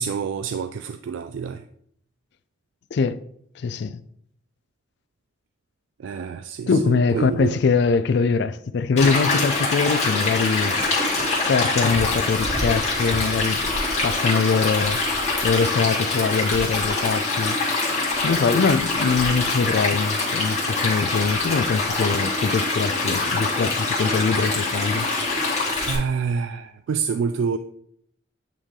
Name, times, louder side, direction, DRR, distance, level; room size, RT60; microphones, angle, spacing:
voice 1, 0.0-1.6 6.0-7.6 25.9-27.6, right 6 dB, 80° right, 0.3 m, -27 dB
voice 2, 2.9-3.2 3.6-4.0 6.7-10.8 11.5-13.7 14.0-15.1 15.4-17.6 18.2-25.1, left 5 dB, 60° left, 0.3 m, -23 dB
Stream, 9.0-26.0, left 3 dB, 35° left, 1.8 m, -24 dB
8.7 x 3.2 x 3.6 m
head